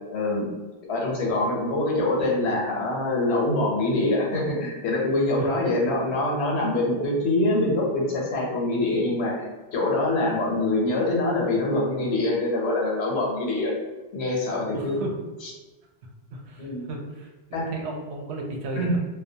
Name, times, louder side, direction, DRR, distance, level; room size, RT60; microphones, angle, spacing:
voice 1, 0.1-0.5 0.9-9.5 9.7-13.7 14.1-15.0 16.6-16.9 17.5-17.7 18.8-18.9, left 2 dB, 80° left, -2 dB, 1.0 m, -24 dB
voice 2, 14.7-15.2 16.3-19.0, right 2 dB, 80° right, 0 dB, 0.8 m, -35 dB
2.3 x 2.1 x 2.6 m, 1.2 s
omnidirectional pair, 1.1 m